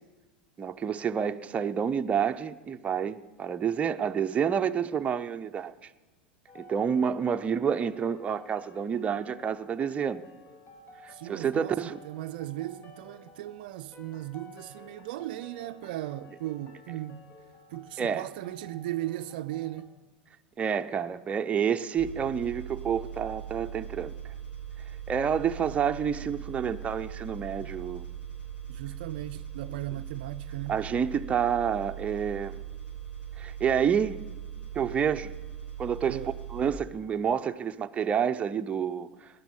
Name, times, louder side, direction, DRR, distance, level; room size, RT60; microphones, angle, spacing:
voice 1, 0.6-5.9 6.5-10.2 11.0-12.0 18.0-18.2 20.6-24.1 25.1-28.1 30.7-32.6 33.4-34.2 34.7-35.3 35.8-36.2 36.5-39.1, right 7 dB, 25° right, 0.7 m, -29 dB
sound 1, 6.5-19.8, left 2 dB, 40° left, 2.3 m, -53 dB
voice 2, 11.1-17.2 17.7-19.9 27.6-27.7 28.7-30.8 36.1-36.4, right 14 dB, 65° right, 0.5 m, -37 dB
sound 2, 22.0-36.7, right 9 dB, 80° left, 5.0 m, -40 dB
18.5 x 11.0 x 7.2 m
hypercardioid pair, 95°, 5 cm